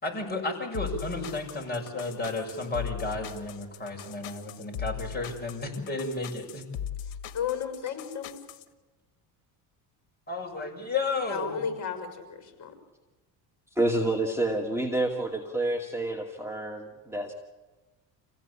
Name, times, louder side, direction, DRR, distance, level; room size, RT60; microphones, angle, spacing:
voice 1, 0.0-6.6 10.3-11.6, left 3 dB, 20° left, 1 dB, 6.8 m, -33 dB
sound 1, 0.7-8.6, left 9 dB, 70° left, 2.0 m, -39 dB
voice 2, 7.1-8.3 11.3-12.7, left 8 dB, 40° left, 7 dB, 6.3 m, -34 dB
voice 3, 13.8-17.3, right 1 dB, 5° right, 1 dB, 2.3 m, -28 dB
27.5 x 16.5 x 8.6 m, 1.2 s
cardioid pair, 115°, 46 cm